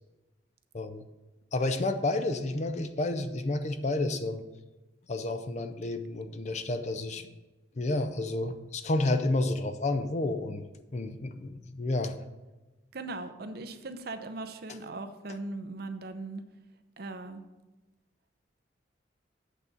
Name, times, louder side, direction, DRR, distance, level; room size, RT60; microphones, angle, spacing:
voice 1, 1.5-4.4 5.1-7.3 7.8-10.6 10.9-12.2, left 2 dB, 40° left, 9 dB, 0.5 m, -30 dB
voice 2, 12.9-16.4 17.0-17.4, right 2 dB, 55° right, 8 dB, 0.7 m, -39 dB
8.3 x 4.0 x 7.0 m, 1.1 s
head